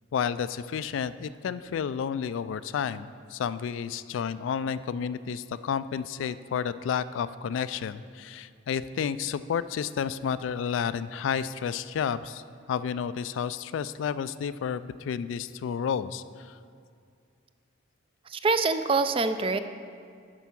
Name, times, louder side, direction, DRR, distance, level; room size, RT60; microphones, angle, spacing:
voice 1, 0.1-12.4 12.7-16.6, left 7 dB, 75° left, 15 dB, 0.3 m, -31 dB
voice 2, 18.3-19.6, right 4 dB, 30° right, 10 dB, 0.3 m, -25 dB
11.0 x 4.6 x 6.0 m, 2.3 s
head